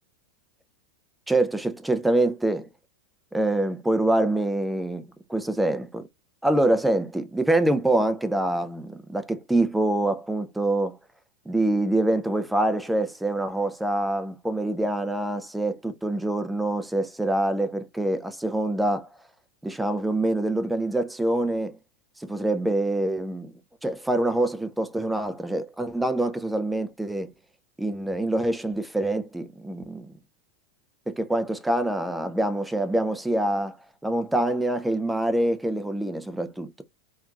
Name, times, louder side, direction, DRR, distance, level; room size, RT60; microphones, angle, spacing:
voice 1, 1.3-2.7 3.3-5.0 5.3-6.0 6.4-11.0 11.5-19.1 19.6-21.8 22.2-23.5 23.8-27.3 27.8-30.1 31.2-33.8 34.0-36.7, right 1 dB, 5° right, 0.3 m, -25 dB
2.7 x 2.3 x 2.3 m
hypercardioid pair, 105°, 0 cm